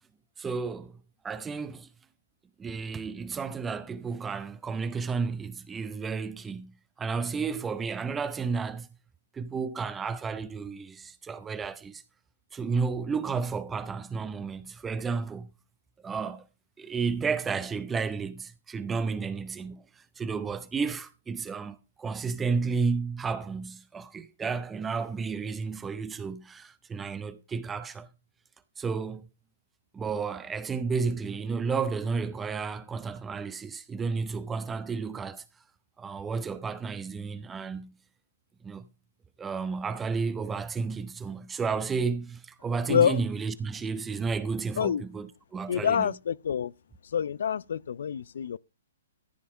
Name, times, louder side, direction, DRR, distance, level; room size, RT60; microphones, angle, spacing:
voice 1, 0.4-0.9 1.2-1.9 2.6-6.7 7.0-8.9 9.3-12.0 12.5-15.5 16.0-16.4 16.8-28.1 28.8-29.3 29.9-35.4 36.0-37.9 38.6-38.9 39.4-46.1, right 5 dB, 15° right, 0.7 m, -32 dB
voice 2, 42.9-43.2 44.8-45.0 45.7-46.7 47.1-48.6, left 8 dB, 65° left, 0.4 m, -26 dB
14.0 x 5.6 x 4.9 m
hypercardioid pair, 130°, 0 cm